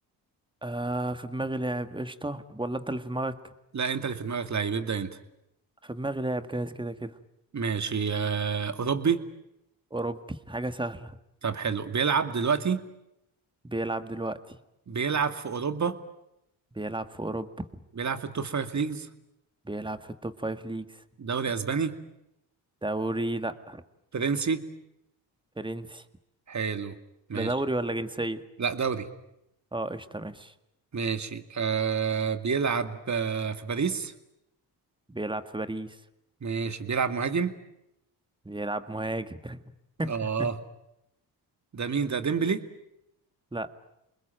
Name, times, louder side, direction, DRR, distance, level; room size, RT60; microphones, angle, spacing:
voice 1, 0.6-3.4 5.8-7.2 9.9-11.2 13.6-14.6 16.8-17.7 19.7-21.0 22.8-23.8 25.6-26.0 27.3-28.4 29.7-30.5 35.1-36.0 38.5-39.6 40.0-40.5 43.5-43.7, right 2 dB, 10° right, 10 dB, 1.9 m, -32 dB
voice 2, 3.7-5.2 7.5-9.2 11.4-12.8 14.9-16.0 18.0-19.1 21.2-21.9 24.1-24.6 26.5-26.9 27.3-27.5 28.6-29.1 30.9-34.1 36.4-37.6 40.1-40.5 41.7-42.6, right 6 dB, 40° right, 9 dB, 2.3 m, -28 dB
28.5 x 21.0 x 9.2 m, 0.84 s
supercardioid pair, 60°, 42 cm